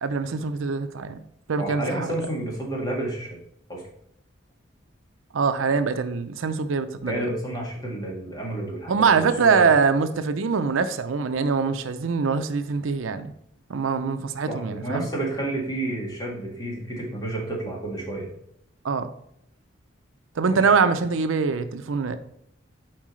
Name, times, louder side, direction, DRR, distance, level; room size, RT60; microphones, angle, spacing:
voice 1, 0.0-1.2 1.5-2.1 5.3-7.3 8.9-13.3 13.7-15.1 18.8-19.1 20.4-22.2, right 5 dB, 90° right, 10 dB, 0.5 m, -23 dB
voice 2, 1.6-3.4 3.7-3.8 7.1-9.7 14.5-18.3 20.5-20.7, right 1 dB, 20° left, -3 dB, 1.8 m, -30 dB
7.4 x 4.6 x 3.2 m, 0.72 s
head